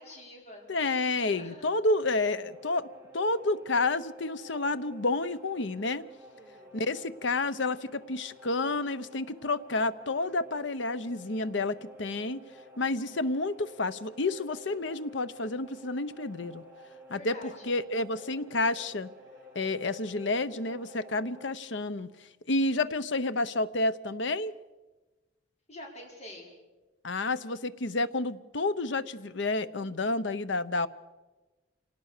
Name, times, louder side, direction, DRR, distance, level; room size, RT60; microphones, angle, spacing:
voice 1, 0.0-1.7 6.3-6.8 17.1-17.7 25.7-26.5, left 1 dB, 35° left, -1 dB, 5.1 m, -47 dB
voice 2, 0.7-2.9 3.1-6.1 6.7-12.4 12.8-16.6 17.1-19.1 19.5-24.5 27.0-30.9, left 2 dB, 70° left, 14 dB, 0.9 m, -30 dB
sound 1, 2.1-21.5, equal, 10° right, 4.2 m, -51 dB
26.5 x 18.5 x 6.7 m, 1.2 s
head